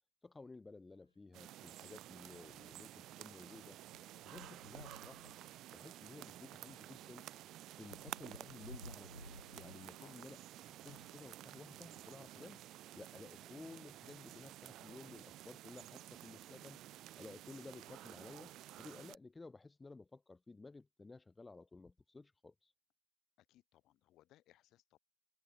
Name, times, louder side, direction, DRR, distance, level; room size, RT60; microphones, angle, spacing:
voice 1, 0.2-3.8 4.2-5.3 5.7-7.3 7.7-9.3 9.5-10.4 10.7-16.8 17.2-22.7, left 3 dB, 10° left, 0.6 m, -55 dB
sound 1, 0.8-0.9 1.3-1.4 1.8-11.2 12.0-13.3 14.0-14.1 14.3-14.4 16.1-16.3 16.9-17.1 17.5-18.8, equal, 90° left, 1.5 m, -59 dB
sound 2, 1.3-19.2, right 14 dB, 35° right, 1.1 m, -53 dB
voice 2, 23.4-25.0, left 14 dB, 35° left, 4.6 m, -67 dB
figure-of-eight pair, 90°, 0 cm